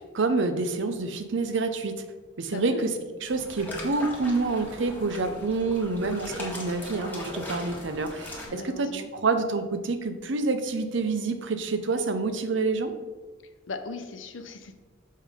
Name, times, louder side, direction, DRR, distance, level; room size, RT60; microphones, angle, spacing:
voice 1, 0.0-2.0 2.4-2.9 3.2-12.9, right 3 dB, 70° right, 8 dB, 0.7 m, -27 dB
voice 2, 2.5-2.9 8.5-9.1 13.7-14.7, left 3 dB, 70° left, 8 dB, 0.7 m, -38 dB
sound 1, 3.3-8.5, left 1 dB, 10° left, 1.5 m, -39 dB
6.5 x 5.4 x 3.6 m, 1.3 s
head